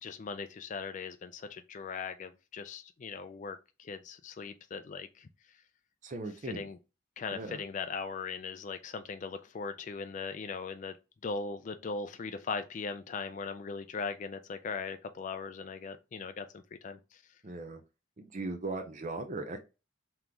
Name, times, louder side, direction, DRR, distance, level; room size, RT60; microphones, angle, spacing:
voice 1, 0.0-5.3 6.4-6.8 7.2-10.9 11.2-17.2, left 5 dB, 40° left, 0.3 m, -39 dB
voice 2, 6.0-6.6 7.3-7.6 17.4-17.8 18.2-19.6, right 3 dB, 40° right, 0.5 m, -38 dB
3.8 x 3.0 x 3.4 m
head